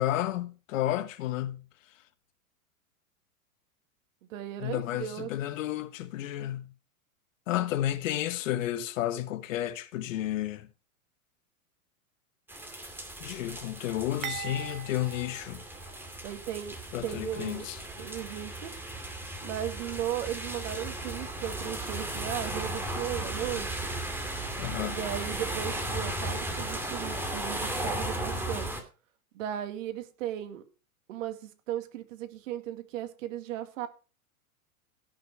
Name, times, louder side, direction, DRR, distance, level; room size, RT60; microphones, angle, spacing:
voice 1, 0.0-1.7 4.6-6.7 7.5-10.7 13.2-15.6 16.9-17.8 24.6-25.0, left 13 dB, 60° left, 1.5 m, -32 dB
voice 2, 4.3-5.3 16.2-17.7 18.0-18.8 19.4-23.8 24.8-28.7 29.3-30.6 31.1-33.9, right 11 dB, 60° right, 2.3 m, -36 dB
sound 1, 12.5-28.8, right 1 dB, 5° right, 2.5 m, -36 dB
sound 2, 14.2-16.4 16.7-16.9 17.8-17.9, right 10 dB, 25° right, 1.4 m, -41 dB
17.0 x 6.4 x 4.8 m
hypercardioid pair, 135°, 43 cm